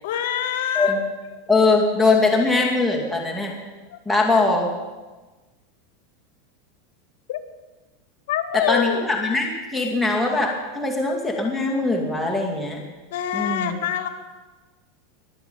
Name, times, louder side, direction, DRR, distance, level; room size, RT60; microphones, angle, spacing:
voice 1, 0.0-1.0 3.9-4.0 7.3-7.4 8.3-9.0 13.1-14.1, left 10 dB, 70° left, 9 dB, 1.9 m, -25 dB
voice 2, 1.5-3.5 4.1-4.7 8.5-12.8 13.3-13.7, left 3 dB, ahead, -2 dB, 2.5 m, -21 dB
22.5 x 7.9 x 7.0 m, 1.2 s
supercardioid pair, 135°, 0 cm